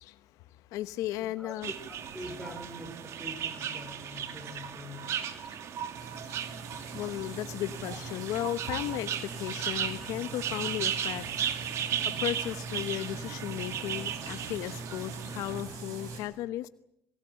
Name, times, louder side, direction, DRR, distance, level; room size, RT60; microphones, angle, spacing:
voice 1, 0.0-1.7 5.5-5.6 6.2-6.4 6.9-11.5 12.0-16.7, left 14 dB, 85° left, 13 dB, 1.0 m, -35 dB
voice 2, 1.2-1.6 1.9-5.6, left 1 dB, ahead, 3 dB, 5.4 m, -45 dB
sound 1, 1.6-15.6, right 9 dB, 60° right, 2.3 m, -36 dB
sound 2, 5.9-16.2, right 4 dB, 75° right, 7.7 m, -42 dB
28.0 x 18.5 x 8.9 m, 0.79 s
cardioid pair, 125°, 5 cm